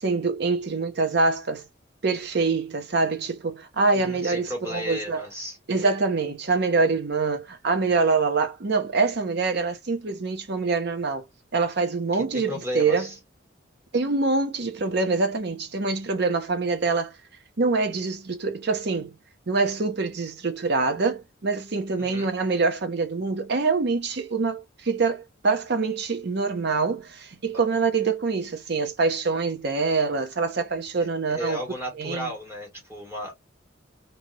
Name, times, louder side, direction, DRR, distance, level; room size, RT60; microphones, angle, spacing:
voice 1, 0.0-1.6 2.0-5.2 5.7-11.2 11.5-13.1 13.9-17.1 17.6-19.1 19.5-31.6 32.0-32.3, right 4 dB, 55° right, 0.7 m, -25 dB
voice 2, 3.9-5.6 12.1-13.2 22.0-22.3 27.5-27.6 31.0-33.3, left 1 dB, 15° right, 1.7 m, -34 dB
3.1 x 2.8 x 2.7 m
head